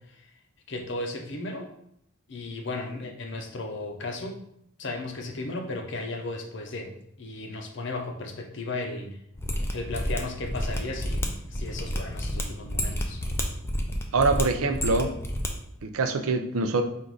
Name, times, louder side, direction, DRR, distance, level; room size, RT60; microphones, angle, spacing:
voice 1, 0.7-1.7 2.3-4.4 4.8-6.9 7.2-9.2 9.7-13.2, left 2 dB, 55° left, 3 dB, 0.6 m, -35 dB
Mechanisms, 9.4-15.5 15.7-15.8, equal, 10° left, 0.4 m, -30 dB
voice 2, 14.1-15.2 15.8-16.8, right 3 dB, 80° right, 7 dB, 0.5 m, -24 dB
4.6 x 2.5 x 3.9 m, 0.74 s
head